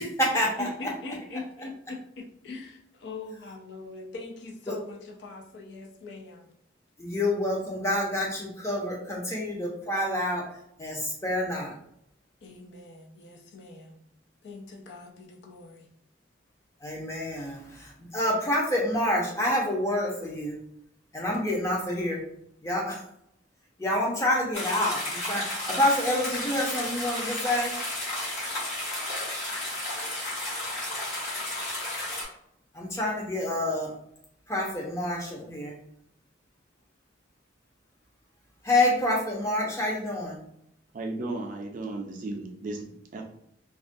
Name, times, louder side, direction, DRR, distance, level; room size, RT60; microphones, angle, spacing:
voice 1, 0.0-0.7 4.7-4.8 7.0-10.4 10.8-11.7 16.8-20.6 21.1-22.2 22.6-23.0 23.8-27.7 32.7-33.9 34.5-35.8 38.6-40.4, left 1 dB, 15° left, -2 dB, 0.6 m, -27 dB
voice 2, 0.6-6.5 12.4-14.0 14.4-15.9 18.0-18.1, left 2 dB, 65° left, 2 dB, 0.4 m, -41 dB
sound 1, 24.5-32.3, left 1 dB, 40° left, 1.1 m, -33 dB
voice 3, 40.9-43.2, right 2 dB, 45° right, 2 dB, 0.4 m, -35 dB
2.3 x 2.1 x 2.5 m, 0.72 s
head